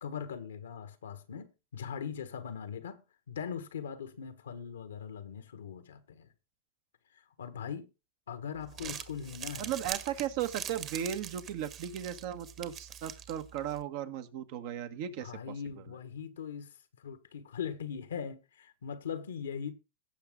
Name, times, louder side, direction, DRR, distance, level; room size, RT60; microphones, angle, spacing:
voice 1, 0.0-3.0 3.3-6.3 7.1-7.9 8.3-9.7 15.2-19.7, left 7 dB, 90° left, 1.4 m, -40 dB
Crumpling crinkling, 8.6-13.8, right 9 dB, 40° right, 1.5 m, -43 dB
voice 2, 9.6-15.9, right 10 dB, 65° right, 1.3 m, -36 dB
16.5 x 6.0 x 3.8 m
hypercardioid pair, 105°, 0 cm